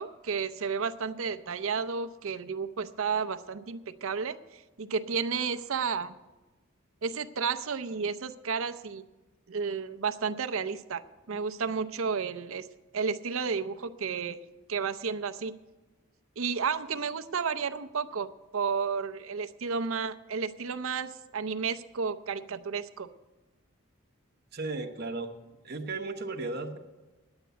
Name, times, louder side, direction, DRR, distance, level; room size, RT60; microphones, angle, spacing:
voice 1, 0.0-6.2 7.0-9.0 9.5-12.7 12.9-14.4 14.7-15.5 16.4-23.1, right 5 dB, 75° right, 12 dB, 0.6 m, -32 dB
voice 2, 24.5-25.3 25.6-26.8, right 3 dB, 45° right, 5 dB, 0.9 m, -35 dB
10.5 x 8.9 x 8.1 m, 1.2 s
head